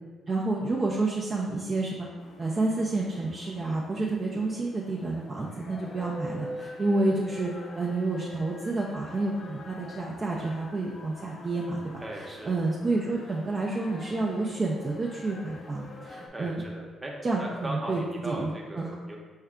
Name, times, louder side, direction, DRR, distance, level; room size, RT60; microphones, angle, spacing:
voice 1, 0.3-2.1 2.4-16.6 17.2-18.9, right 2 dB, 35° right, -4 dB, 0.5 m, -29 dB
sound 1, 2.2-16.3, left 2 dB, 50° left, 0.6 m, -45 dB
voice 2, 12.0-12.6 16.3-17.1 17.4-19.2, right 1 dB, 15° right, -2 dB, 0.9 m, -38 dB
5.4 x 2.3 x 3.6 m, 1.3 s
cardioid pair, 90°, 0 cm